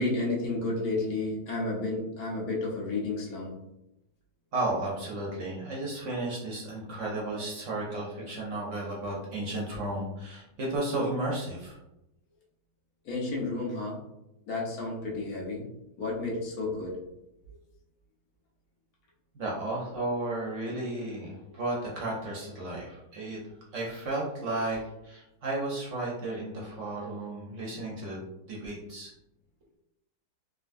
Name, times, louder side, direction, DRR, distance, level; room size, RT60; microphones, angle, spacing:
voice 1, 0.0-3.5 13.0-14.0 14.5-15.6 16.0-16.9, left 2 dB, 65° left, -3 dB, 1.3 m, -31 dB
voice 2, 4.5-11.8 19.3-23.4 23.7-28.2 28.5-29.1, right 2 dB, 60° right, -3 dB, 0.8 m, -33 dB
3.6 x 2.3 x 2.5 m, 0.88 s
omnidirectional pair, 1.8 m